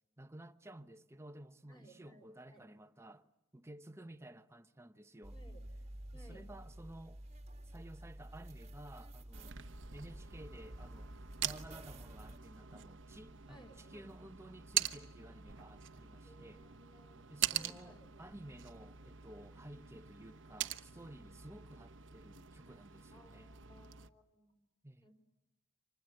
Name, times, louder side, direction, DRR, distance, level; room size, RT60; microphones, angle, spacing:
voice 1, 0.2-5.4 6.1-7.2 7.6-9.6 9.9-11.1 11.4-16.6 17.3-23.5 24.8-25.0, right 1 dB, 15° right, 1.0 m, -54 dB
voice 2, 1.7-2.6 5.3-5.6 6.1-6.4 13.5-14.1 16.2-18.1 23.1-24.5 25.0-25.1, right 1 dB, 25° left, 5.1 m, -61 dB
sound 1, 5.2-12.4, right 1 dB, 30° right, 1.7 m, -51 dB
sound 2, 9.3-24.1, right 11 dB, 65° right, 1.1 m, -43 dB
29.5 x 26.0 x 7.8 m
head